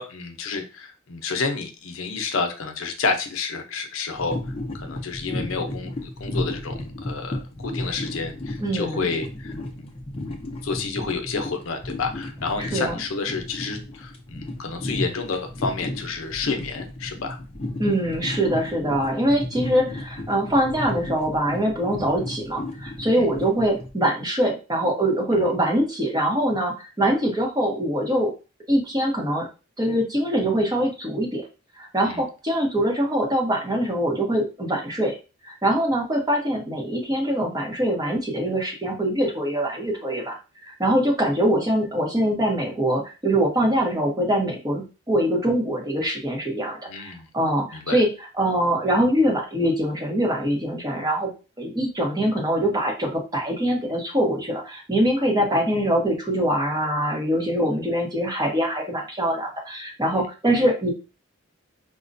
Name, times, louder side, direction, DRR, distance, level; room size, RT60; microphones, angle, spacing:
voice 1, 0.0-4.4 4.7-9.5 9.8-9.9 10.6-17.4 23.2-23.3 25.3-25.5 32.1-32.2 46.9-47.3 47.7-48.0 60.1-60.3, left 4 dB, 75° left, 5 dB, 0.6 m, -30 dB
sound 1, 4.1-23.9, left 1 dB, 25° left, 0.6 m, -34 dB
voice 2, 8.6-9.1 12.6-12.9 17.8-28.3 28.7-29.5 29.8-31.4 31.8-35.2 35.4-40.4 40.6-51.3 51.6-60.9, right 1 dB, 20° right, 0 dB, 0.8 m, -23 dB
5.1 x 2.1 x 2.6 m, 0.32 s
head